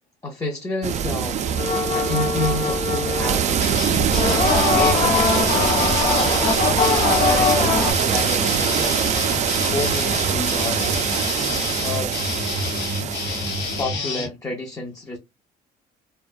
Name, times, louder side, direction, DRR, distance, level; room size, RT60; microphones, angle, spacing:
voice 1, 0.2-3.8 4.4-6.6 7.1-9.0 9.6-11.1 11.8-12.2 13.8-15.2, left 2 dB, 15° left, 0.5 m, -30 dB
sound 1, 0.8-13.8, right 8 dB, 45° right, 0.4 m, -23 dB
sound 2, 1.6-3.3 4.1-7.9, left 5 dB, 55° left, 0.7 m, -22 dB
sound 3, 3.6-14.3, left 3 dB, 85° left, 0.9 m, -28 dB
2.5 x 2.2 x 2.3 m
cardioid pair, 110°, 17 cm